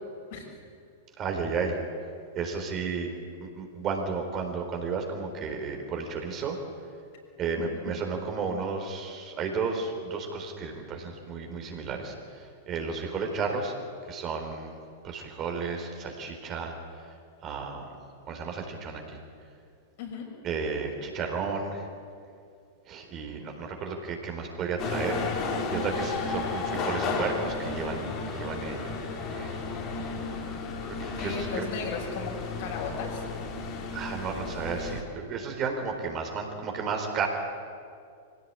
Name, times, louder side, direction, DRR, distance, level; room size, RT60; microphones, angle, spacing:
voice 1, 1.2-1.8 2.3-3.1 3.5-6.6 7.4-12.1 12.7-13.7 14.1-14.8 15.0-16.7 17.4-17.8 18.3-19.0 20.4-21.8 22.9-25.2 25.7-28.1 28.3-28.9 29.3-29.5 31.0-31.7 33.9-37.3, right 5 dB, 35° right, 3 dB, 4.1 m, -32 dB
sound 1, 24.8-35.0, left 4 dB, 40° left, 3.7 m, -33 dB
voice 2, 31.2-33.2, left 5 dB, 55° left, 0 dB, 6.3 m, -35 dB
24.0 x 16.5 x 8.8 m, 2.3 s
figure-of-eight pair, 100°, 0 cm